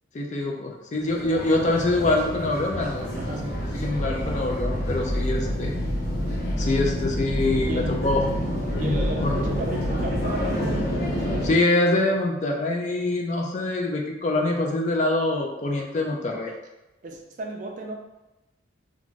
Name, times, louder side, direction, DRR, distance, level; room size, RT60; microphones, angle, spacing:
voice 1, 0.1-3.1 3.7-5.8 6.6-8.2 8.8-9.4 11.4-16.5, left 2 dB, 35° left, 1 dB, 0.3 m, -25 dB
sound 1, 1.0-11.5, equal, 55° left, 0.8 m, -27 dB
voice 2, 3.2-3.5 7.6-8.0 8.8-11.0 16.5-16.6 17.0-17.9, right 2 dB, 40° right, 1 dB, 0.4 m, -35 dB
2.5 x 2.4 x 3.0 m, 1.0 s
head